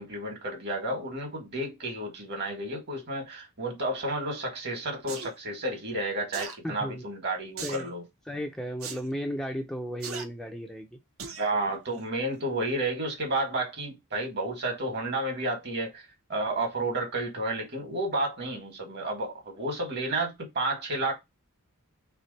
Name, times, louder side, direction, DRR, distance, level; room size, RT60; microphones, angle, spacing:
voice 1, 0.0-8.0 11.3-16.0 16.3-21.1, right 2 dB, 50° right, 1.7 m, -31 dB
sound 1, 5.1-5.3 6.3-6.6 7.6-7.9 8.8-9.0 10.0-10.3 11.2-11.5 11.9-12.0, right 5 dB, 65° right, 0.9 m, -38 dB
voice 2, 6.6-7.0 7.6-7.9 8.3-11.0, equal, ahead, 0.4 m, -34 dB
3.5 x 3.3 x 4.0 m
head